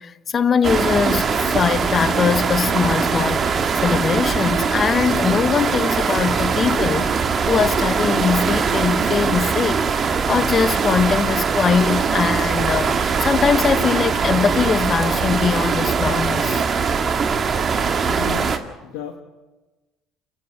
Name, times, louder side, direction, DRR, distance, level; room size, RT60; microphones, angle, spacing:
voice 1, 0.0-16.7, left 6 dB, 40° left, 1.1 m, -21 dB
sound 1, 0.6-18.6, right 5 dB, 40° right, 1.9 m, -21 dB
voice 2, 17.8-19.2, left 8 dB, 75° left, 1.9 m, -34 dB
30.0 x 10.5 x 9.2 m
hypercardioid pair, 65°, 0 cm